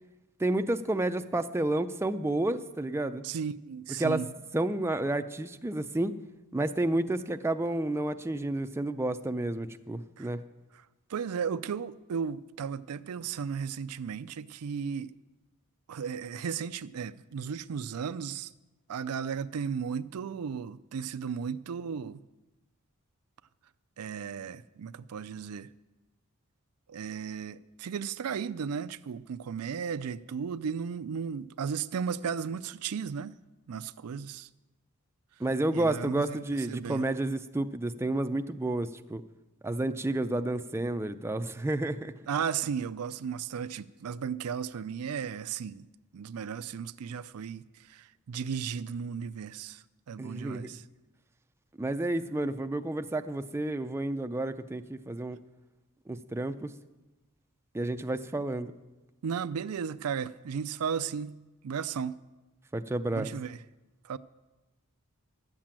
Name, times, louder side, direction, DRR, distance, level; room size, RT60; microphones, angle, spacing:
voice 1, 0.4-3.3 4.0-4.2 4.5-6.1 6.5-10.4 35.4-39.2 39.6-42.1 50.2-50.8 51.8-55.4 56.1-56.7 57.7-58.7 62.7-63.3, right 2 dB, 10° right, 0.4 m, -30 dB
voice 2, 3.2-4.3 10.2-10.3 11.1-15.1 15.9-18.5 18.9-22.2 24.0-25.7 26.9-33.4 33.7-34.5 35.7-36.4 36.7-37.1 42.3-45.8 46.1-47.6 47.9-50.8 59.2-62.2 63.1-63.6 64.0-64.2, right 6 dB, 80° right, 0.4 m, -35 dB
12.0 x 7.5 x 8.8 m
head